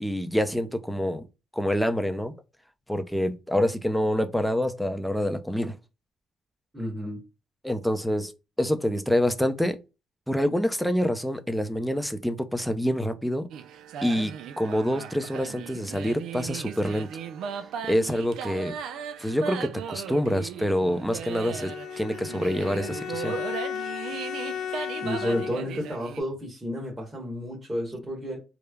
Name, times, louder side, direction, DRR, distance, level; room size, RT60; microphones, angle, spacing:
voice 1, 0.0-1.3 1.5-2.3 2.9-5.8 7.6-9.8 10.3-13.5 14.0-17.1 17.8-18.7 19.2-23.4, equal, ahead, 0.5 m, -26 dB
voice 2, 6.7-7.2 25.0-28.4, equal, 15° right, 1.1 m, -31 dB
sound 1, 13.5-26.2, right 7 dB, 80° right, 0.3 m, -37 dB
Bowed string instrument, 21.3-25.8, left 9 dB, 70° left, 0.3 m, -35 dB
3.1 x 2.1 x 2.2 m
cardioid pair, 90°, 0 cm